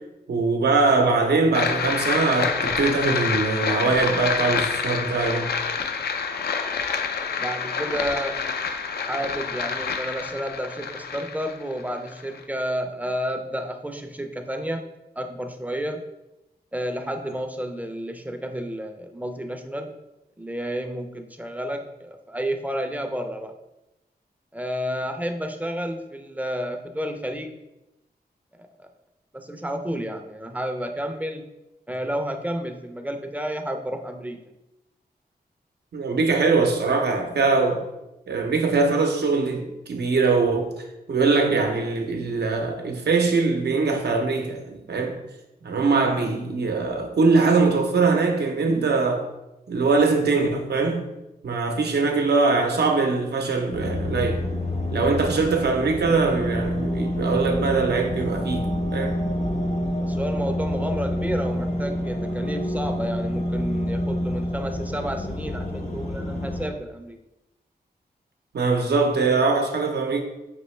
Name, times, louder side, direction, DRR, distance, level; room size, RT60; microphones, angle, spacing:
voice 1, 0.3-5.5 35.9-37.9 38.3-45.2 45.6-49.3 49.7-51.1 51.4-54.4 54.9-59.2 68.5-70.2, right 4 dB, 85° right, 0.7 m, -22 dB
sound 1, 1.5-12.4, left 5 dB, 75° left, 0.4 m, -27 dB
voice 2, 7.4-8.4 9.1-14.8 15.2-16.0 16.7-19.9 20.4-23.5 24.5-27.5 28.6-28.9 29.3-31.4 31.9-34.4 60.0-67.2, equal, 10° right, 0.4 m, -31 dB
sound 2, 53.7-66.7, left 1 dB, 45° left, 0.7 m, -27 dB
5.3 x 2.8 x 3.2 m
wide cardioid pair, 85°, 17 cm